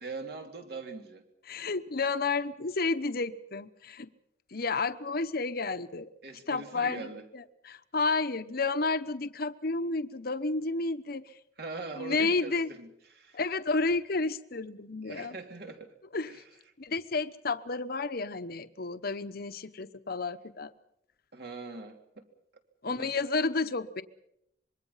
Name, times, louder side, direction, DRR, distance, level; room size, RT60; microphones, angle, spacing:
voice 1, 0.0-1.2 6.2-7.2 11.6-13.4 15.0-15.9 16.3-16.4 21.3-22.2 22.9-23.1, right 3 dB, 65° right, 4 dB, 3.3 m, -42 dB
voice 2, 1.5-4.1 4.5-6.1 6.5-7.1 7.3-11.3 12.0-12.7 13.3-15.3 16.1-16.4 16.8-20.7 22.8-24.0, left 3 dB, 60° left, 12 dB, 1.0 m, -31 dB
25.5 x 22.5 x 5.7 m, 0.77 s
head